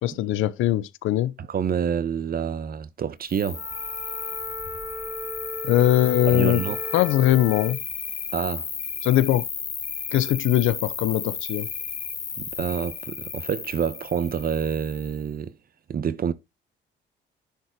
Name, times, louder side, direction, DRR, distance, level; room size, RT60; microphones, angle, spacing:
voice 1, 0.0-1.3 5.6-6.6 6.9-7.8 9.0-9.4 10.1-11.7, left 13 dB, 90° left, 0.8 m, -21 dB
voice 2, 1.4-3.6 6.3-6.8 8.3-8.7 12.4-15.5 15.9-16.3, right 7 dB, 50° right, 1.0 m, -27 dB
Cricket, 3.3-15.2, left 6 dB, 35° left, 1.0 m, -34 dB
Wind instrument woodwind instrument, 3.5-7.8, equal, 15° right, 2.1 m, -37 dB
10.5 x 4.3 x 4.6 m
cardioid pair, 90°, 20 cm